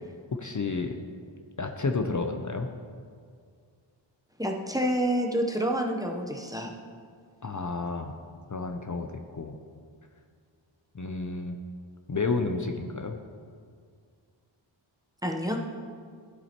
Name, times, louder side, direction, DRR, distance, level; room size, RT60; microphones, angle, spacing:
voice 1, 0.3-1.0 1.6-2.7 7.4-8.2 8.5-9.6 10.9-11.6 12.1-13.2, left 3 dB, 40° left, 5 dB, 0.6 m, -31 dB
voice 2, 4.4-6.7 15.2-15.6, equal, 10° right, 2 dB, 0.8 m, -28 dB
12.5 x 7.5 x 2.9 m, 2.1 s
wide cardioid pair, 50°, 48 cm